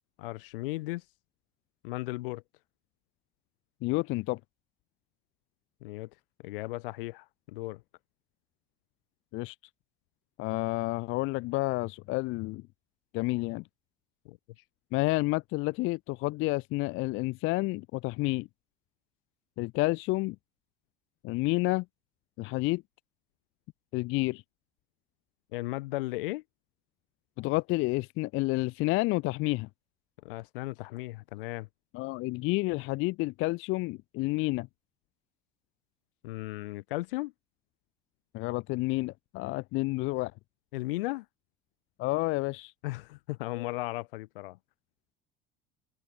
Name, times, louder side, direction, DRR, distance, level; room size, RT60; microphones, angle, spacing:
voice 1, 0.2-1.0 1.8-2.4 5.8-6.1 6.4-7.8 14.2-14.4 25.5-26.4 30.2-31.7 36.2-37.3 40.7-41.3 42.8-44.6, left 21 dB, 65° left, 1.0 m, -36 dB
voice 2, 3.8-4.4 9.3-9.6 10.4-12.6 13.1-13.6 14.9-18.5 19.6-20.4 21.2-21.9 22.4-22.8 23.9-24.4 27.4-29.7 31.9-34.7 38.3-40.3 42.0-42.7, left 22 dB, 45° left, 0.5 m, -30 dB
figure-of-eight pair, 65°, 30 cm